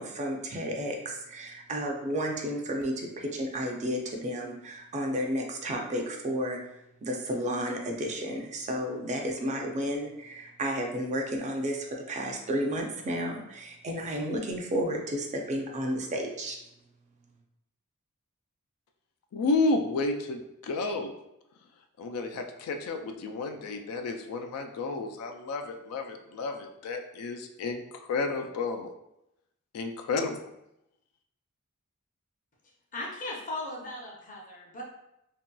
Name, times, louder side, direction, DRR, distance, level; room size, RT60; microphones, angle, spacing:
voice 1, 0.0-6.6 7.0-16.6, equal, 30° right, 1 dB, 0.4 m, -32 dB
voice 2, 19.3-21.1 22.0-28.9 29.7-30.3, left 3 dB, 80° left, 5 dB, 0.3 m, -31 dB
voice 3, 32.9-34.8, left 2 dB, 35° left, -1 dB, 0.6 m, -37 dB
2.9 x 2.7 x 2.2 m, 0.85 s
head